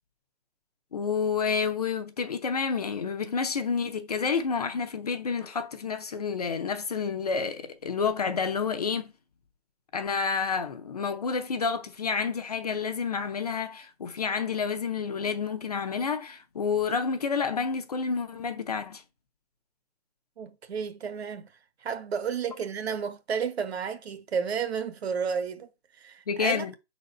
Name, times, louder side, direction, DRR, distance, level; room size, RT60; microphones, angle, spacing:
voice 1, 0.9-9.1 9.9-19.0 26.3-26.7, left 5 dB, 35° left, 0.6 m, -29 dB
voice 2, 20.4-21.5 21.8-25.7 26.0-26.6, right 6 dB, 75° right, 1.3 m, -32 dB
5.2 x 4.1 x 5.2 m
hypercardioid pair, 180°, 32 cm